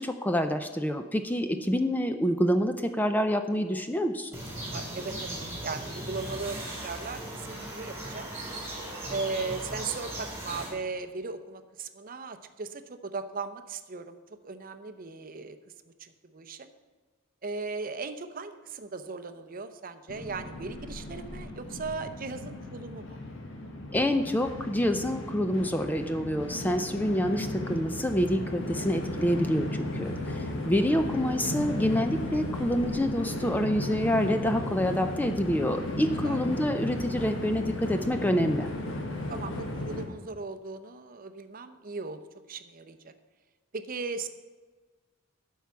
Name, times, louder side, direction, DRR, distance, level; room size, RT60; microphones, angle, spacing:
voice 1, 0.0-4.3 23.9-38.7, equal, 10° left, 7 dB, 0.4 m, -27 dB
sound 1, 4.3-10.7, right 1 dB, 15° right, 2.8 m, -38 dB
voice 2, 4.7-8.3 9.1-15.6 15.9-16.7 17.4-23.2 36.2-36.4 39.3-42.2 42.5-43.1 43.7-44.3, right 4 dB, 45° right, 10 dB, 0.6 m, -37 dB
Train, 20.1-40.0, left 1 dB, 60° left, 1.5 m, -35 dB
12.0 x 4.7 x 7.0 m, 1.3 s
head